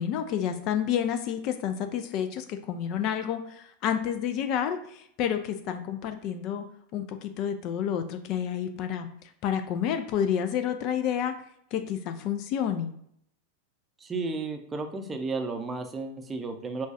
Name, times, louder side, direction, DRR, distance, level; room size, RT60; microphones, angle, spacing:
voice 1, 0.0-6.6 6.9-11.4 11.7-12.9, left 9 dB, 40° left, 8 dB, 0.4 m, -29 dB
voice 2, 14.0-16.9, right 3 dB, 15° right, 5 dB, 0.6 m, -33 dB
6.0 x 2.3 x 2.5 m, 0.71 s
figure-of-eight pair, 90°, 0 cm